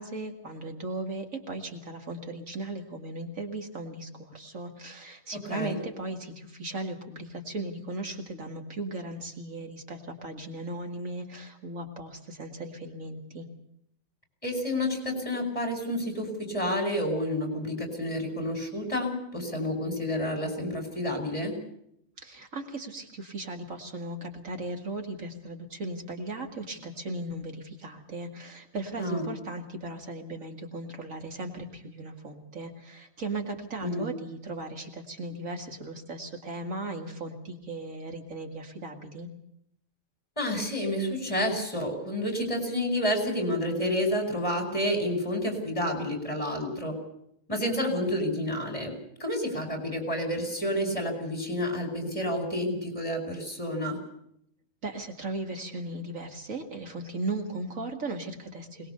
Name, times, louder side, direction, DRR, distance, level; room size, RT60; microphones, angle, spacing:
voice 1, 0.0-13.5 22.2-39.3 54.8-58.9, right 2 dB, 75° right, 4 dB, 2.6 m, -37 dB
voice 2, 5.5-5.8 14.4-21.6 29.0-29.3 33.8-34.1 40.4-47.0 47.5-48.9 49.2-54.0, left 1 dB, 25° left, 4 dB, 5.3 m, -29 dB
22.5 x 20.0 x 6.7 m, 0.74 s
omnidirectional pair, 1.4 m